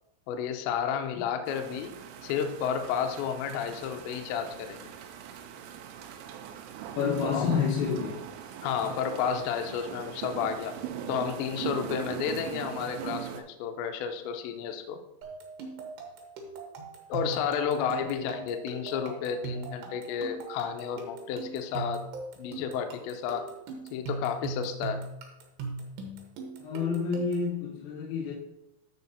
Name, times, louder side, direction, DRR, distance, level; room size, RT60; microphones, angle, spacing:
voice 1, 0.3-2.0 2.2-4.9 7.2-7.6 8.6-10.8 11.1-15.0 17.1-22.1 22.4-23.5 23.9-25.0, left 7 dB, 90° left, 5 dB, 2.5 m, -31 dB
sound 1, 1.5-13.4, right 9 dB, 90° right, 3.5 m, -40 dB
voice 2, 7.0-8.3 17.7-18.4 26.6-28.3, left 5 dB, 70° left, -5 dB, 3.3 m, -29 dB
sound 2, 15.2-27.5, right 3 dB, 70° right, 2.8 m, -40 dB
13.5 x 4.7 x 2.7 m, 0.88 s
omnidirectional pair, 6.0 m